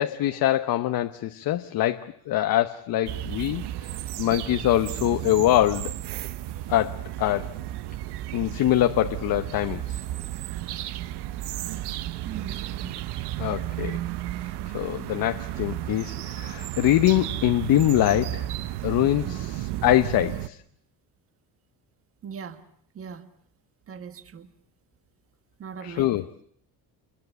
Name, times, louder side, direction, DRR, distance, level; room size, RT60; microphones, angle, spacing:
voice 1, 0.0-3.6 4.2-5.9 6.7-7.5 8.3-10.0 13.4-14.0 14.7-18.5 18.8-20.6 25.8-26.3, left 13 dB, 60° left, 8 dB, 1.0 m, -24 dB
sound 1, 3.0-20.5, right 14 dB, 90° right, 1.0 m, -33 dB
voice 2, 12.2-13.0 19.2-19.5 22.2-22.6 22.9-23.2 23.9-24.5 25.6-26.1, right 7 dB, 35° right, 9 dB, 1.7 m, -39 dB
28.0 x 22.0 x 8.2 m, 0.63 s
cardioid pair, 160°, 39 cm